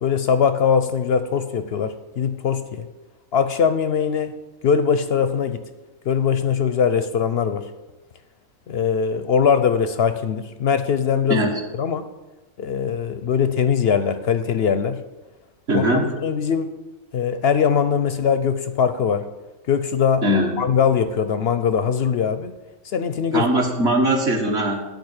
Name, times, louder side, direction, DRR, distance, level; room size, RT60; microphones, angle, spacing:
voice 1, 0.0-2.9 3.3-4.3 4.6-5.6 6.1-7.6 8.7-11.5 11.8-12.1 12.6-15.0 15.7-15.8 16.2-16.7 17.1-19.2 19.7-20.2 20.6-22.5 22.9-23.5, left 7 dB, 60° left, 10 dB, 0.7 m, -21 dB
voice 2, 15.7-16.1 20.2-20.5 23.3-24.9, right 1 dB, 50° right, 0 dB, 1.6 m, -20 dB
11.0 x 5.2 x 8.0 m, 1.1 s
omnidirectional pair, 1.5 m